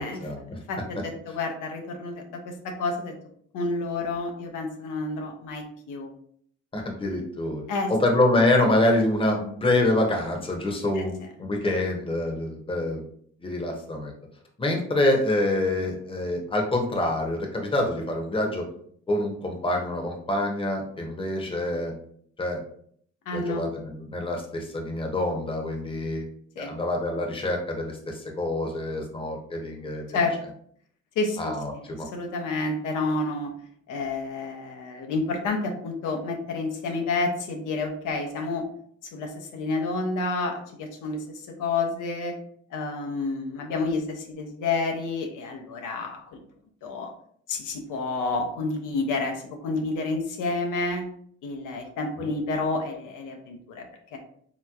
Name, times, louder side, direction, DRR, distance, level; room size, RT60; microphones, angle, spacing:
voice 1, 0.0-0.6 6.7-7.6 7.9-11.1 11.4-13.0 13.4-14.1 14.6-18.7 19.1-21.9 22.4-22.6 23.3-26.3 26.6-30.2 31.4-32.1, left 1 dB, 20° left, 1 dB, 0.8 m, -26 dB
voice 2, 0.7-3.1 3.5-6.1 7.7-7.9 10.9-11.0 23.3-23.7 26.6-26.7 30.1-30.3 31.2-31.5 32.1-33.5 33.9-38.7 39.1-42.4 42.7-46.4 46.8-47.1 47.5-51.0 51.4-53.8 54.1-54.2, left 3 dB, 90° left, 3 dB, 0.6 m, -29 dB
3.3 x 2.9 x 2.3 m, 0.62 s
cardioid pair, 90°, 30 cm